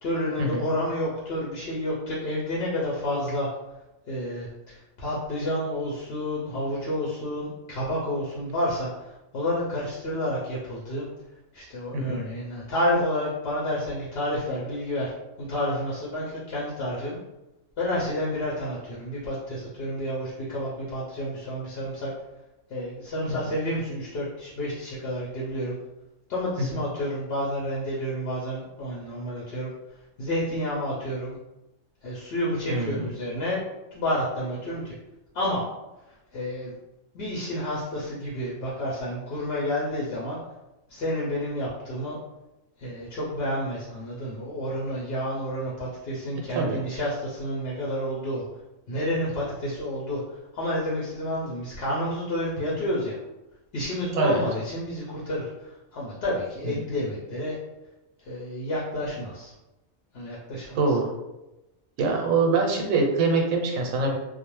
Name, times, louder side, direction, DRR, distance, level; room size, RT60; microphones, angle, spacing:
voice 1, 0.0-3.5 4.1-11.1 11.5-15.1 15.4-17.2 17.8-22.1 22.7-25.8 26.3-29.7 30.2-31.4 32.0-33.6 33.9-34.9 35.3-35.6 36.3-36.7 37.1-40.4 40.9-42.2 42.8-48.4 48.9-53.2 53.7-57.6 58.2-59.5 60.1-60.8, left 1 dB, 60° left, -6 dB, 0.7 m, -30 dB
voice 2, 32.7-33.1 46.5-46.8 54.1-54.4 56.6-56.8 60.7-61.0 62.0-64.2, right 3 dB, 85° right, 2 dB, 1.0 m, -24 dB
2.4 x 2.0 x 3.0 m, 0.98 s
omnidirectional pair, 1.4 m